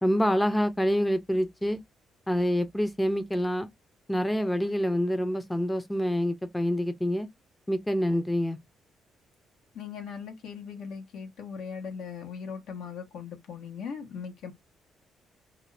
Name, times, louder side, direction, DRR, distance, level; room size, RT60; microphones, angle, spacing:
voice 1, 0.0-1.8 2.3-3.7 4.1-7.3 7.7-8.6, equal, 10° left, 0.5 m, -26 dB
voice 2, 9.7-14.5, left 6 dB, 80° left, 1.0 m, -39 dB
2.5 x 2.4 x 3.2 m
cardioid pair, 90°, 0 cm